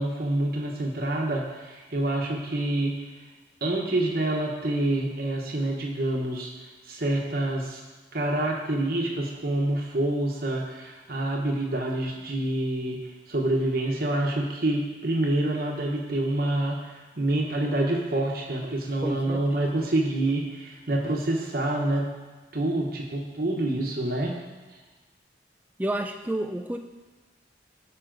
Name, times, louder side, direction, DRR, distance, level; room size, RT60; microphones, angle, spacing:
voice 1, 0.0-3.0 3.6-6.5 6.9-7.8 8.1-13.0 13.3-22.1 22.5-24.4, right 1 dB, 50° right, -1 dB, 1.0 m, -27 dB
voice 2, 19.0-19.6 25.8-26.8, right 1 dB, 10° right, 5 dB, 0.3 m, -30 dB
12.5 x 5.6 x 3.9 m, 1.3 s
head